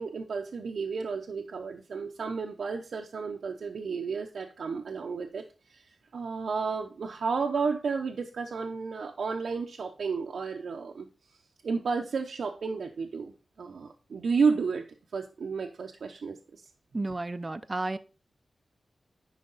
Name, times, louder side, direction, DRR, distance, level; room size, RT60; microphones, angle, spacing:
voice 1, 0.0-5.4 5.7-5.8 6.1-11.1 11.6-14.8 15.1-16.6, right 5 dB, 85° right, 0.8 m, -32 dB
voice 2, 16.9-18.0, right 2 dB, 30° right, 0.6 m, -32 dB
10.0 x 5.0 x 4.0 m
wide cardioid pair, 85°, 0 cm